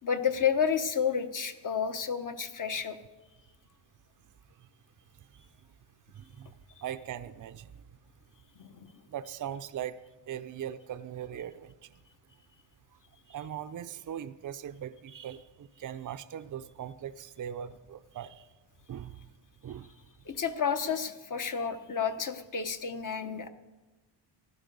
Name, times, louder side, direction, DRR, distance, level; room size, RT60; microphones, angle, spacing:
voice 1, 0.0-3.0 8.6-8.9 20.3-23.5, left 7 dB, 45° left, 8 dB, 1.0 m, -30 dB
voice 2, 6.1-6.5 6.8-7.7 9.1-10.0 10.3-11.7 13.3-18.5 18.9-19.2 19.6-19.9, right 10 dB, 45° right, 10 dB, 0.5 m, -40 dB
15.0 x 12.0 x 5.3 m, 1.1 s
cardioid pair, 115°, 45 cm